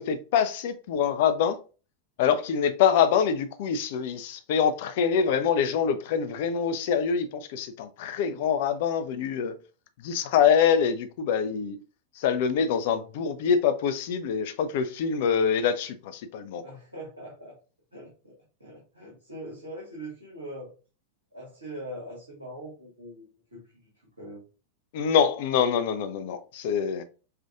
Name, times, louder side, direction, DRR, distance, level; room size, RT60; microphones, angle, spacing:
voice 1, 0.0-1.6 2.2-9.5 10.0-11.8 12.2-16.6 24.9-27.0, left 7 dB, 50° left, 0.5 m, -25 dB
voice 2, 16.6-17.6 17.9-18.3 18.6-20.7 21.3-23.2 23.5-23.9 24.2-24.4, right 1 dB, 80° right, 1.4 m, -42 dB
5.4 x 2.4 x 2.4 m
figure-of-eight pair, 90°, 0 cm